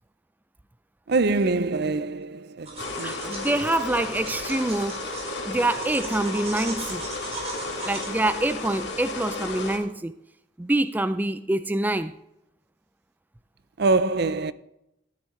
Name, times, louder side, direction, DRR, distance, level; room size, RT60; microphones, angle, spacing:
voice 1, 1.1-2.7 3.0-3.3 13.8-14.5, right 3 dB, 60° right, 0.6 m, -24 dB
sound 1, 2.7-8.1, right 3 dB, 35° right, 4.3 m, -39 dB
sound 2, 2.8-9.8, left 3 dB, 70° left, 2.5 m, -33 dB
voice 2, 3.0-5.0 5.5-7.0 7.8-10.1 10.6-12.1, right 1 dB, 10° right, 0.3 m, -26 dB
13.0 x 10.5 x 3.2 m
head